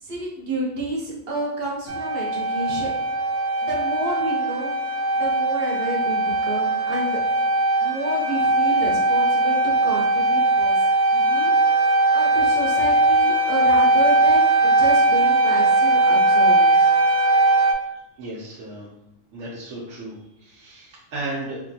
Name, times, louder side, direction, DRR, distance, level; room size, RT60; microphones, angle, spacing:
voice 1, 0.0-2.9 3.6-7.2 7.8-10.8 11.1-11.5 11.8-16.9, right 1 dB, 55° right, -2 dB, 0.9 m, -30 dB
sound 1, 1.9-17.7, right 2 dB, 75° right, 0.4 m, -19 dB
voice 2, 17.1-17.7 18.2-18.9 19.3-21.6, right 2 dB, 90° right, -7 dB, 1.1 m, -35 dB
3.2 x 2.6 x 2.7 m, 0.86 s
omnidirectional pair, 1.3 m